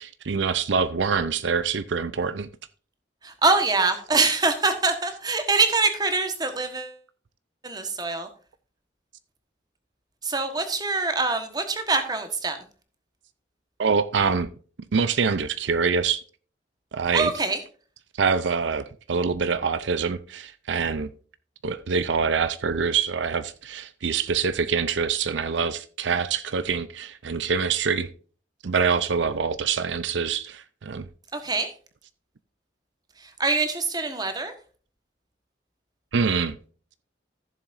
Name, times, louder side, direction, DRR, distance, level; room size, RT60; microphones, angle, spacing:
voice 1, 0.0-2.5 13.8-14.5 14.9-16.2 16.9-17.3 18.1-21.1 21.6-28.1 28.6-31.1 36.1-36.6, right 5 dB, 75° right, 0.5 m, -25 dB
voice 2, 3.2-6.9 7.6-8.3 10.2-12.6 17.1-17.6 31.3-31.7 33.2-34.5, right 3 dB, 20° right, 1.3 m, -24 dB
15.0 x 7.2 x 2.6 m
head